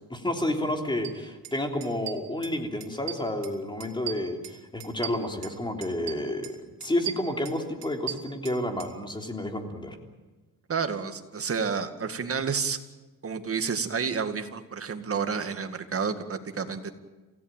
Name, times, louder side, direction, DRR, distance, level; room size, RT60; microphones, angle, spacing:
voice 1, 0.1-6.5 6.8-10.0, left 1 dB, 10° left, 3 dB, 3.5 m, -30 dB
sound 1, 1.0-1.1 1.4-1.6 1.8-2.6 2.8-3.5 3.8-5.6 5.8-6.5 6.8-8.9, right 12 dB, 80° right, 2.9 m, -38 dB
voice 2, 10.7-12.8 13.2-16.9, right 5 dB, 35° right, 7 dB, 2.1 m, -30 dB
28.0 x 16.5 x 9.1 m, 1.2 s
cardioid pair, 120°, 40 cm